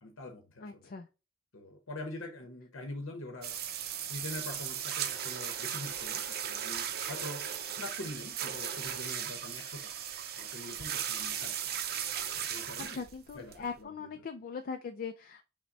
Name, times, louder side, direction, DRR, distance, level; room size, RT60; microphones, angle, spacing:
voice 1, 0.0-0.9 1.5-3.5 4.1-7.5 7.7-9.9 10.4-11.7 12.3-13.0 13.3-14.1, left 2 dB, 70° left, 0.9 m, -44 dB
voice 2, 0.6-1.1 12.9-15.4, left 5 dB, 45° left, 0.4 m, -40 dB
sound 1, 3.4-13.8, right 9 dB, 50° right, 0.5 m, -37 dB
6.0 x 2.2 x 4.0 m
head